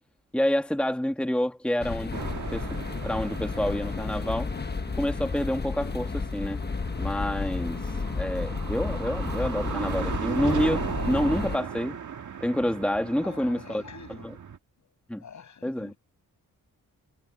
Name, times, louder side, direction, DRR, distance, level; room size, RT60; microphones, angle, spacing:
voice 1, 0.3-2.2 2.5-2.8 3.0-4.5 5.0-6.6 7.0-7.8 8.2-12.0 12.4-13.8 14.2-14.3 15.1-15.2 15.6-15.9, left 1 dB, 5° left, 1.6 m, -28 dB
sound 1, 1.8-11.6, left 4 dB, 30° left, 1.2 m, -32 dB
sound 2, 2.1-14.6, right 7 dB, 60° right, 1.9 m, -37 dB
voice 2, 13.1-14.4 14.8-16.0, left 6 dB, 60° left, 7.7 m, -47 dB
cardioid pair, 90°, 34 cm